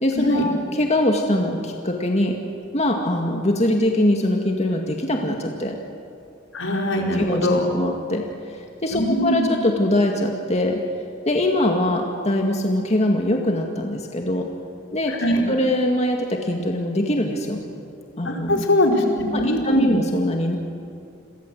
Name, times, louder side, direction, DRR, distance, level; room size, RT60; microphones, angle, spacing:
voice 1, 0.0-2.3 2.7-5.8 7.1-8.3 8.8-10.8 11.3-14.5 14.9-17.6 18.2-18.7 19.3-20.6, left 1 dB, 35° left, 2 dB, 2.1 m, -22 dB
voice 2, 6.5-7.7 8.9-9.5 15.1-15.4 18.2-19.9, left 1 dB, 80° left, 1 dB, 4.4 m, -21 dB
29.5 x 23.0 x 7.8 m, 2.5 s
head